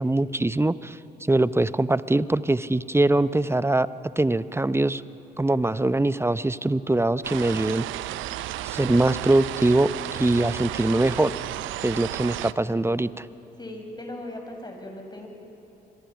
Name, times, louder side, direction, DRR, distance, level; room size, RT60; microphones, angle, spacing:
voice 1, 0.0-5.0 5.4-7.8 8.6-11.3 11.8-13.3, right 2 dB, 10° right, 15 dB, 0.8 m, -23 dB
sound 1, 7.2-12.5, right 15 dB, 70° right, 0.6 m, -33 dB
voice 2, 13.6-15.3, left 1 dB, 20° left, 2 dB, 6.4 m, -38 dB
26.0 x 24.0 x 6.0 m, 2.9 s
hypercardioid pair, 45°, 21 cm